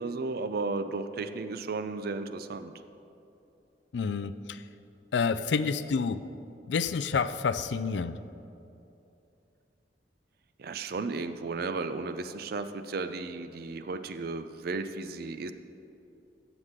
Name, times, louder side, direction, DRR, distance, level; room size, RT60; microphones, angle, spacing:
voice 1, 0.0-2.7 10.6-15.5, right 3 dB, 60° right, 10 dB, 0.5 m, -34 dB
voice 2, 3.9-4.6 5.1-6.2 6.7-8.2, left 5 dB, 75° left, 13 dB, 0.4 m, -29 dB
14.0 x 7.9 x 3.7 m, 2.7 s
head